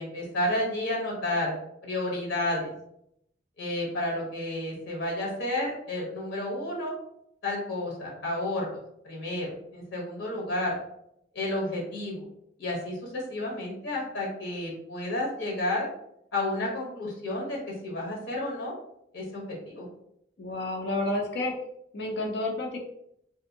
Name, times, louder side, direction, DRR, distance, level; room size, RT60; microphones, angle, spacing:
voice 1, 0.0-1.5 1.8-2.7 3.6-6.9 7.4-8.8 9.0-10.8 11.3-12.3 12.6-15.9 16.3-18.7 19.1-19.9, left 1 dB, 85° left, -2 dB, 0.9 m, -31 dB
voice 2, 20.4-21.5 21.9-22.8, left 2 dB, 60° left, 2 dB, 0.4 m, -30 dB
2.7 x 2.5 x 2.6 m, 0.75 s
head